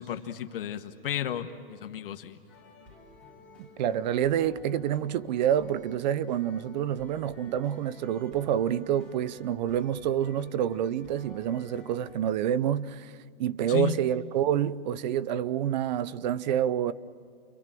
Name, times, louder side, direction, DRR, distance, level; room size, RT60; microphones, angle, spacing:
voice 1, 0.0-2.4 13.7-14.0, left 11 dB, 65° left, 1.3 m, -33 dB
sound 1, 2.5-12.2, left 2 dB, 5° left, 4.5 m, -53 dB
voice 2, 3.6-13.1 13.4-16.9, right 10 dB, 45° right, 0.7 m, -28 dB
29.5 x 23.5 x 7.6 m
hypercardioid pair, 150°, 30 cm